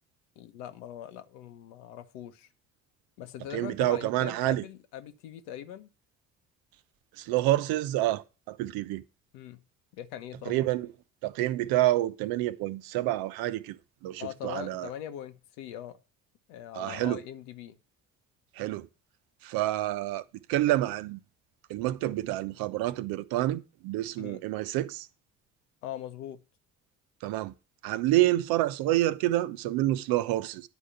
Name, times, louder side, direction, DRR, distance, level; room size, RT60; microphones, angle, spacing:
voice 1, 0.3-2.5 3.2-5.9 9.3-9.6 9.9-10.7 14.2-16.0 16.5-17.8 24.2-24.4 25.8-26.4, left 11 dB, 65° left, 1.3 m, -41 dB
voice 2, 3.5-4.6 7.1-9.0 10.5-10.9 11.2-14.9 16.7-17.2 18.5-18.9 19.4-20.2 20.5-21.2 21.7-25.1 27.2-27.5 27.8-30.7, right 15 dB, 60° right, 0.9 m, -28 dB
10.5 x 5.0 x 6.9 m
figure-of-eight pair, 55°, 40 cm